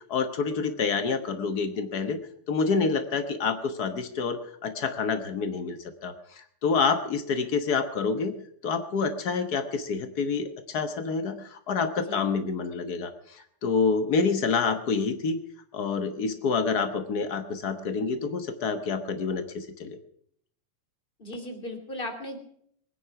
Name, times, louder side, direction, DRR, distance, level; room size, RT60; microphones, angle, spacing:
voice 1, 0.1-2.2 2.5-8.3 8.6-15.4 15.7-20.0, left 5 dB, 85° left, 9 dB, 0.8 m, -28 dB
voice 2, 21.2-22.4, left 1 dB, 20° left, 7 dB, 2.5 m, -36 dB
22.5 x 10.0 x 5.8 m, 0.67 s
omnidirectional pair, 3.5 m